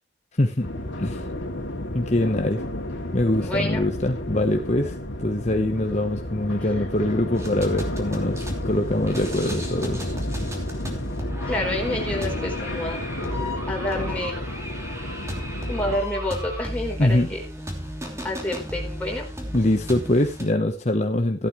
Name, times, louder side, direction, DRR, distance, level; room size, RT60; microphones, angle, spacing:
voice 1, 0.4-0.7 1.0-1.2 1.9-2.6 3.1-10.0 17.0-17.3 19.5-21.5, left 1 dB, 35° left, 5 dB, 1.0 m, -23 dB
sound 1, 0.6-16.0, left 1 dB, 80° left, 2.7 m, -32 dB
voice 2, 3.4-3.8 11.5-13.0 13.7-14.4 15.7-17.4 18.2-19.3, left 1 dB, 5° left, -1 dB, 4.2 m, -28 dB
sound 2, 7.3-20.5, equal, 15° right, 3.0 m, -34 dB
14.5 x 12.0 x 3.2 m, 0.28 s
head